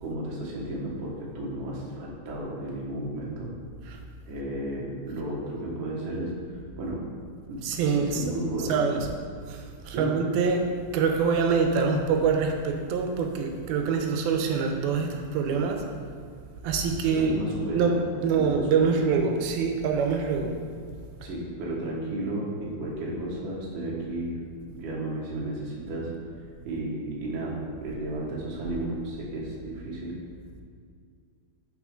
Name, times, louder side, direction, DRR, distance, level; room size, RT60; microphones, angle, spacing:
voice 1, 0.0-3.5 4.3-6.3 6.8-7.0 7.5-7.6 7.9-9.0 9.9-10.1 17.1-18.9 21.2-24.4 24.7-26.1 26.6-30.2, right 1 dB, 65° right, -5 dB, 2.8 m, -33 dB
voice 2, 7.6-8.3 8.6-9.1 9.4-10.7 10.9-15.9 16.6-17.4 17.7-20.6, right 5 dB, 85° right, 3 dB, 2.6 m, -25 dB
11.0 x 4.5 x 3.7 m, 2.1 s
omnidirectional pair, 4.3 m